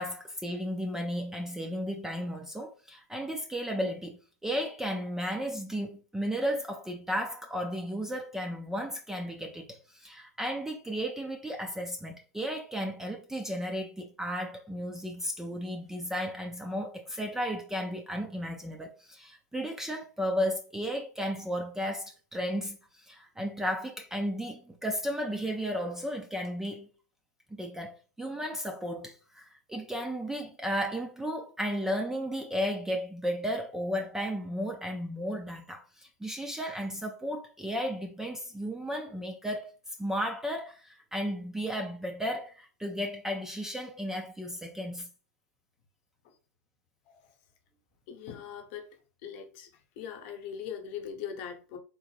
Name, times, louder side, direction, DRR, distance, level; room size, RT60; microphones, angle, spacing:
voice 1, 0.0-26.9 27.5-39.7 40.0-45.1, equal, 5° right, 0.4 m, -34 dB
voice 2, 48.1-48.9 49.2-49.7 50.0-51.8, left 8 dB, 45° left, 0.8 m, -40 dB
3.8 x 2.1 x 3.2 m
hypercardioid pair, 115°, 9 cm